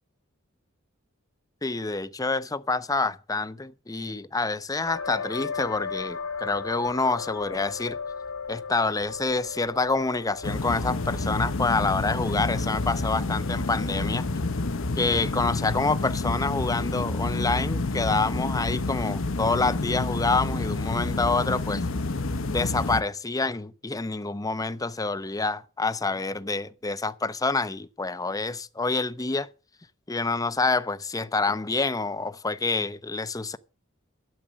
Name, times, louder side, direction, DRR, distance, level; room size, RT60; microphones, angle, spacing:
voice 1, 1.6-8.0 8.5-14.3 15.0-21.8 22.5-29.5 30.1-33.6, left 3 dB, 15° left, 0.6 m, -27 dB
sound 1, 4.9-16.2, left 5 dB, 85° left, 2.8 m, -38 dB
sound 2, 10.4-23.0, left 2 dB, 65° left, 1.0 m, -29 dB
12.5 x 7.6 x 7.2 m
head